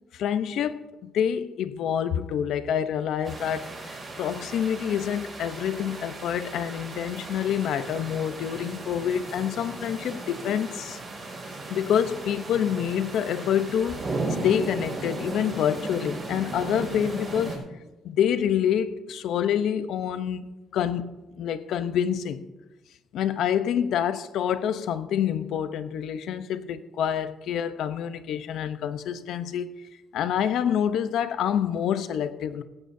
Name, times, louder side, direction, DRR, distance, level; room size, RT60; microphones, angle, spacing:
voice 1, 0.1-3.7 4.2-11.0 11.7-14.1 14.4-17.6 18.0-20.5 20.7-22.4 23.1-29.7 30.1-32.6, left 9 dB, 70° left, 0.8 m, -27 dB
sound 1, 3.2-17.6, right 2 dB, 25° right, 5.6 m, -36 dB
17.0 x 16.0 x 2.7 m
cardioid pair, 130°, 0 cm